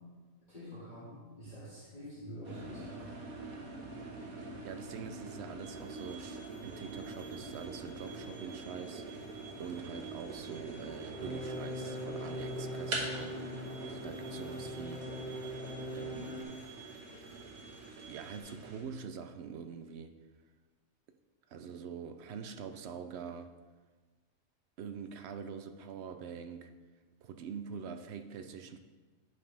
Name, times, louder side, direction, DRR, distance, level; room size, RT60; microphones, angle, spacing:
voice 1, 0.5-3.2, equal, 30° left, -11 dB, 2.4 m, -47 dB
sound 1, 2.4-18.8, right 3 dB, 90° right, 1.6 m, -44 dB
voice 2, 4.4-9.0 9.6-15.1 15.9-16.5 18.1-20.1 21.5-23.5 24.8-26.7 27.2-28.8, right 6 dB, 60° right, 8 dB, 0.7 m, -44 dB
sound 2, 5.6-18.4, right 5 dB, 35° right, 1.8 m, -56 dB
sound 3, 11.1-16.4, left 1 dB, 65° left, 2.7 m, -41 dB
9.3 x 5.5 x 3.4 m, 1.4 s
omnidirectional pair, 1.5 m